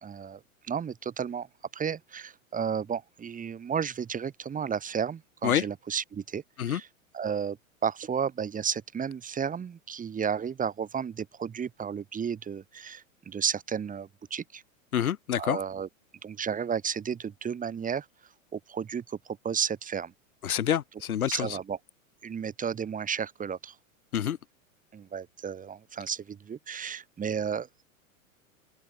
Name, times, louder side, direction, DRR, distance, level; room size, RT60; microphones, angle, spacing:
voice 1, 0.0-1.5 1.7-6.9 7.1-7.6 7.8-14.6 15.4-15.9 16.2-18.1 18.5-20.1 21.3-21.8 22.2-23.8 24.9-27.8, right 7 dB, 20° right, 2.2 m, -33 dB
voice 2, 14.9-15.6 20.4-21.5 24.1-24.4, left 10 dB, 85° left, 1.8 m, -27 dB
hypercardioid pair, 110°, 42 cm